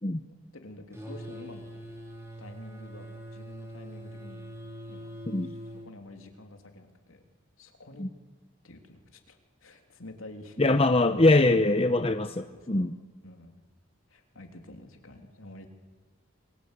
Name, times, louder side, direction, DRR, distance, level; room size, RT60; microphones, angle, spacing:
voice 1, 0.2-1.7 2.4-4.4 4.8-5.1 5.8-7.2 7.6-8.1 8.6-10.6 12.2-12.8 13.2-13.6 14.1-15.7, left 1 dB, 75° left, 4 dB, 3.2 m, -48 dB
sound 1, 0.9-5.9, right 1 dB, 15° right, 4.7 m, -43 dB
voice 2, 10.6-13.0, left 2 dB, 25° left, 8 dB, 0.8 m, -23 dB
28.0 x 22.5 x 8.1 m, 1.3 s
head